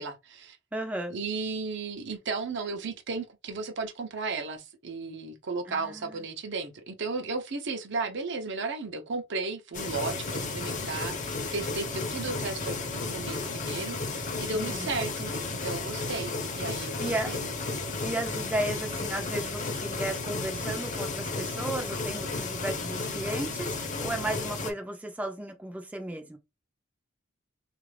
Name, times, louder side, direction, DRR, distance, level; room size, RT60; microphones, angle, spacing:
voice 1, 0.0-0.6 1.1-12.8 13.1-17.5 17.9-18.0, right 4 dB, 60° right, 0.7 m, -34 dB
voice 2, 0.7-1.1 5.7-6.2 14.5-15.0 17.0-17.3 18.0-26.4, right 1 dB, 5° right, 0.5 m, -34 dB
sound 1, 9.7-24.7, left 3 dB, 40° left, 0.8 m, -33 dB
3.7 x 2.5 x 3.2 m
head